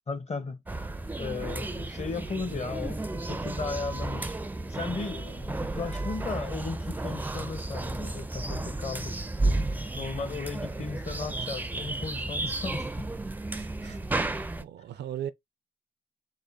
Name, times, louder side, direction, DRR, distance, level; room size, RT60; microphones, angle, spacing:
voice 1, 0.1-0.9 1.2-4.3 4.7-9.1 9.9-13.1 13.8-14.0, left 4 dB, 40° left, 0.9 m, -36 dB
sound 1, 0.7-14.6, right 2 dB, 10° right, 0.4 m, -33 dB
voice 2, 13.5-15.3, right 10 dB, 75° right, 0.4 m, -39 dB
3.7 x 2.1 x 3.5 m
cardioid pair, 75°, 18 cm